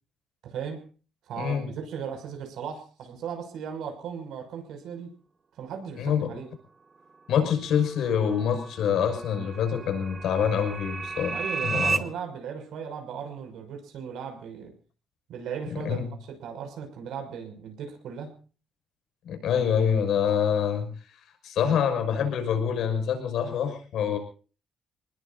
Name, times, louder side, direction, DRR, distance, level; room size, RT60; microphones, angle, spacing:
voice 1, 0.4-0.9 1.3-5.1 5.6-6.5 11.3-14.7 15.3-18.4, right 7 dB, 80° right, 5 dB, 6.1 m, -37 dB
voice 2, 1.4-1.7 6.0-6.3 7.3-11.4 11.6-12.0 15.7-16.1 19.2-20.9 21.4-24.2, left 8 dB, 70° left, 6 dB, 6.1 m, -26 dB
sound 1, 7.7-12.0, right 4 dB, 25° right, 1.3 m, -33 dB
27.0 x 20.0 x 2.6 m, 0.37 s
cardioid pair, 160°, 0 cm